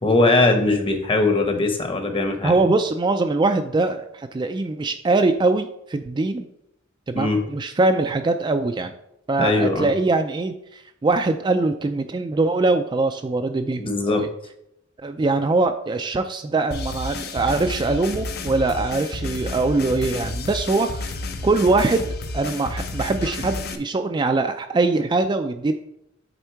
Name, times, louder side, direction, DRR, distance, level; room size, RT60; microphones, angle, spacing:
voice 1, 0.0-2.6 7.1-7.4 9.4-9.9 13.8-14.3, left 2 dB, 25° left, 5 dB, 0.9 m, -20 dB
voice 2, 2.4-6.5 7.1-8.9 9.3-14.3 15.0-21.2 21.4-22.1 22.3-25.7, right 3 dB, 25° right, 7 dB, 0.3 m, -22 dB
sound 1, 16.7-23.8, left 2 dB, 55° left, 0.6 m, -31 dB
8.0 x 3.6 x 4.5 m, 0.78 s
head